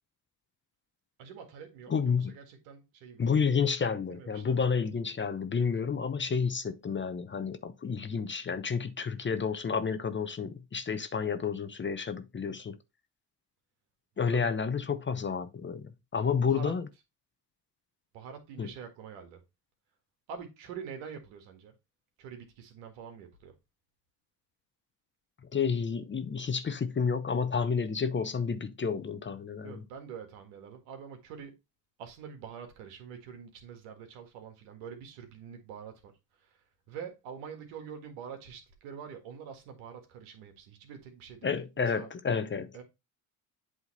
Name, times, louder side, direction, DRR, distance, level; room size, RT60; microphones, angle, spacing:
voice 1, 1.2-3.3 4.1-4.7 14.2-14.6 16.4-16.7 18.1-19.4 20.3-21.7 22.2-23.5 29.6-31.5 32.0-42.1 42.7-42.8, right 7 dB, 80° right, 1.9 m, -45 dB
voice 2, 1.9-2.3 3.2-12.8 14.2-16.8 18.6-18.7 25.5-29.8 41.4-42.7, left 6 dB, 25° left, 0.7 m, -30 dB
8.1 x 3.7 x 4.1 m
hypercardioid pair, 65°, 47 cm